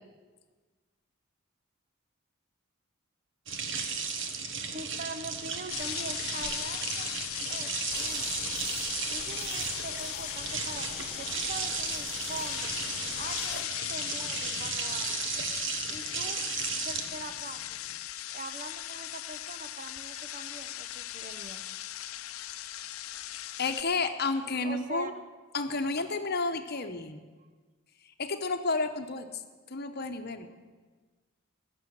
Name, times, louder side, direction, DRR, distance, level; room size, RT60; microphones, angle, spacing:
sound 1, 3.5-17.9, right 5 dB, 60° right, 1.4 m, -35 dB
voice 1, 4.7-8.6 9.1-12.7 13.2-15.3 15.9-16.4 16.8-17.6 18.3-21.6 24.6-25.1, right 3 dB, 35° right, 9 dB, 0.8 m, -43 dB
sound 2, 5.7-23.8, left 13 dB, 75° left, 0.6 m, -38 dB
sound 3, 7.9-13.7, left 6 dB, 30° left, 1.4 m, -42 dB
voice 2, 23.6-25.1 25.5-27.2 28.2-29.3 29.7-30.5, left 3 dB, 45° left, 7 dB, 1.0 m, -31 dB
16.0 x 7.0 x 9.8 m, 1.4 s
head